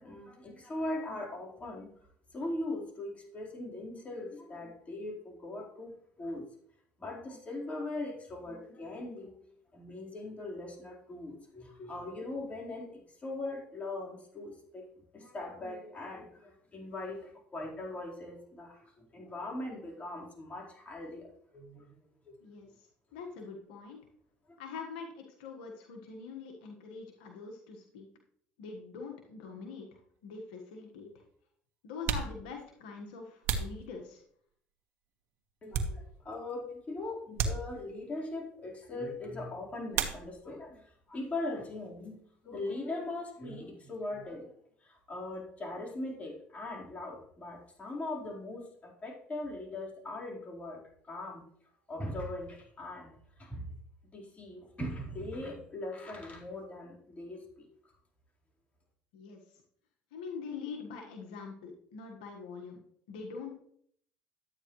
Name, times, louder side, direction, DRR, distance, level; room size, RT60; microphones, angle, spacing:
voice 1, 0.0-1.9 2.3-6.4 7.0-9.3 9.7-14.9 15.1-21.3 21.5-21.9 35.6-44.5 44.8-50.8 51.1-51.4 51.9-53.7 54.1-57.7, left 2 dB, 30° left, -2 dB, 4.2 m, -40 dB
voice 2, 23.1-24.0 24.6-28.1 28.6-29.9 30.2-31.2 31.8-34.2 59.1-59.4 60.1-62.8 63.1-63.5, left 5 dB, 90° left, 2 dB, 1.5 m, -44 dB
sound 1, 30.2-30.3 31.2-31.3 31.9-34.5 35.1-36.4 36.7-36.9 37.3-38.2 39.9-40.7 41.0-41.7 41.9-44.1, right 6 dB, 70° right, 1.4 m, -37 dB
12.0 x 9.1 x 3.2 m, 0.66 s
supercardioid pair, 80°, 5 cm